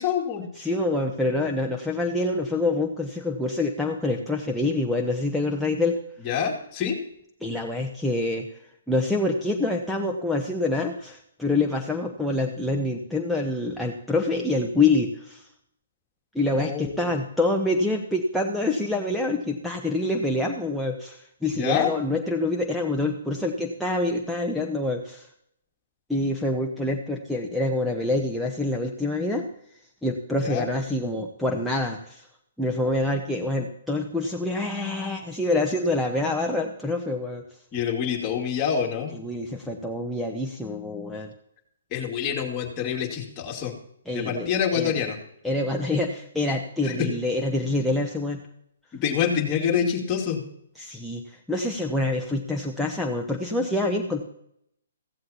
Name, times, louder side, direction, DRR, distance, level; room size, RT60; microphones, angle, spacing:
voice 1, 0.0-0.4 6.3-7.0 16.6-17.0 21.5-21.9 30.4-30.7 32.8-32.9 37.7-39.1 41.9-43.7 44.1-45.2 46.8-47.1 48.9-50.4, left 8 dB, 25° left, 1 dB, 2.4 m, -26 dB
voice 2, 0.5-6.0 7.4-8.6 8.9-15.5 16.3-25.3 26.1-29.5 30.0-32.3 32.6-37.4 39.1-41.3 44.1-45.0 45.4-48.4 50.7-54.3, left 2 dB, ahead, -1 dB, 0.9 m, -26 dB
15.5 x 15.5 x 2.9 m, 0.73 s
figure-of-eight pair, 130°, 0 cm